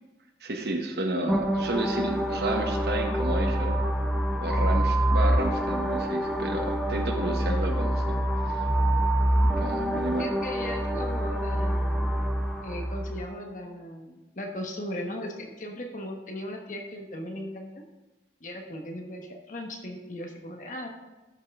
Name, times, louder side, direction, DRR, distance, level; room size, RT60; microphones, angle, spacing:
voice 1, 0.4-3.8 4.4-8.0 8.4-8.6 9.6-10.3, right 1 dB, 65° right, 3 dB, 1.1 m, -31 dB
sound 1, 1.3-13.2, right 1 dB, ahead, 0.6 m, -26 dB
voice 2, 10.2-12.2 12.6-17.8 18.4-20.9, left 1 dB, 45° left, 2 dB, 1.1 m, -37 dB
12.0 x 5.5 x 3.6 m, 1.1 s
head